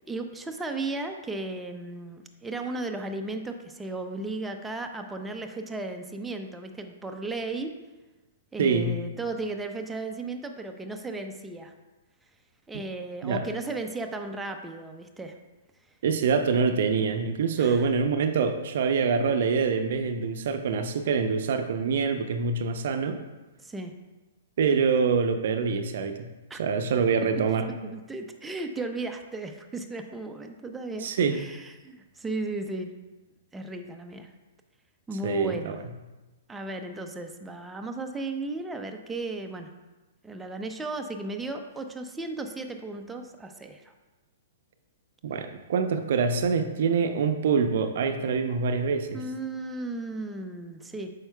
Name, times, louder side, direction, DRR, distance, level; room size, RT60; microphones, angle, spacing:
voice 1, 0.1-7.7 8.5-11.7 12.7-15.4 17.6-17.9 23.6-23.9 26.5-26.6 27.8-32.9 33.5-34.3 35.1-35.8 36.5-39.7 40.2-43.9 49.1-51.2, right 2 dB, 10° right, 4 dB, 0.6 m, -35 dB
voice 2, 8.6-9.0 13.2-13.4 16.0-23.2 24.6-26.3 26.6-27.7 31.0-31.4 35.2-35.8 45.2-49.2, right 5 dB, 55° right, 8 dB, 0.6 m, -25 dB
8.8 x 6.3 x 2.3 m, 1.1 s
figure-of-eight pair, 115°, 0 cm